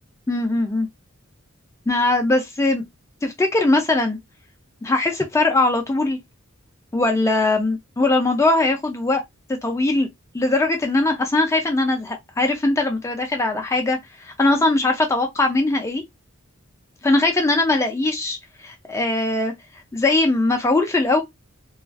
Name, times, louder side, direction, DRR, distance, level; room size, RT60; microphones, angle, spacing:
voice 1, 0.3-0.9 1.9-2.8 3.2-4.2 4.8-6.2 6.9-9.2 9.6-10.1 10.3-14.0 14.2-16.0 17.0-19.5 19.9-21.2, left 2 dB, 15° left, 0.3 m, -20 dB
2.4 x 2.3 x 2.3 m
head